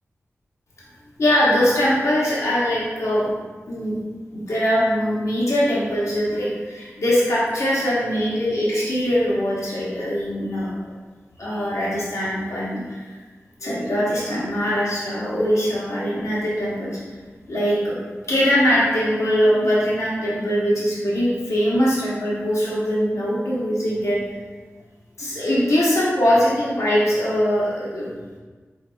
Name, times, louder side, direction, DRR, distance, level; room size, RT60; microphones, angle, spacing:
voice 1, 1.2-3.3 3.7-4.0 4.3-10.7 11.4-13.1 13.6-17.0 17.5-18.0 18.3-24.2 25.2-28.1, equal, 80° left, -7 dB, 1.0 m, -21 dB
4.6 x 3.9 x 2.2 m, 1.4 s
wide cardioid pair, 65°, 5 cm